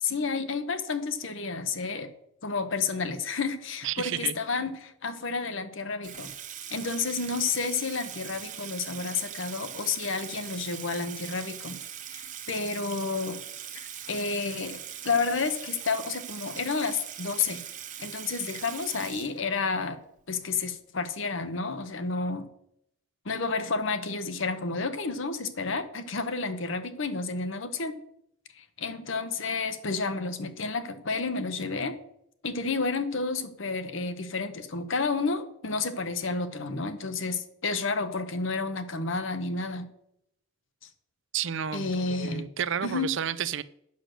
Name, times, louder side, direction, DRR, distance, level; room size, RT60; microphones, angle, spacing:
voice 1, 0.0-2.1 2.4-6.3 6.7-11.8 12.1-13.4 14.1-17.6 18.0-20.0 20.3-22.5 23.2-27.9 28.6-31.9 32.4-39.9 41.7-42.5 42.8-43.1, left 4 dB, 60° left, 0.9 m, -30 dB
voice 2, 3.8-4.4 41.3-43.6, right 8 dB, 60° right, 0.5 m, -31 dB
Water tap faucet / Sink (filling or washing), 6.0-19.8, right 10 dB, 35° right, 0.9 m, -41 dB
8.2 x 6.4 x 6.4 m
head